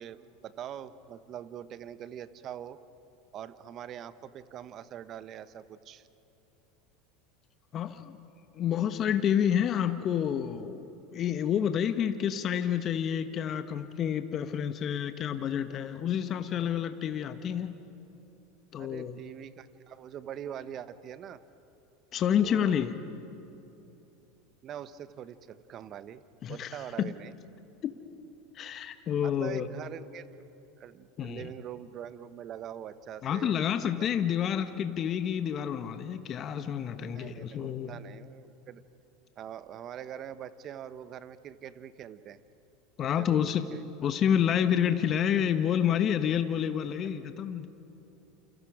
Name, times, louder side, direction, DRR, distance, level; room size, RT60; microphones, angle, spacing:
voice 1, 0.0-2.8 3.3-6.1 18.8-21.4 22.4-22.8 24.6-26.2 26.5-27.3 29.2-30.3 30.8-33.6 37.1-38.8 39.4-42.4 43.2-43.9, right 10 dB, 45° right, 13 dB, 1.1 m, -43 dB
voice 2, 7.7-8.2 8.5-17.8 18.7-19.2 22.1-22.9 26.4-27.1 27.8-27.9 28.5-29.7 31.2-31.5 33.2-38.0 43.0-43.6 44.0-47.7, left 9 dB, 40° left, 9 dB, 1.2 m, -29 dB
30.0 x 28.5 x 5.0 m, 3.0 s
hypercardioid pair, 85°, 0 cm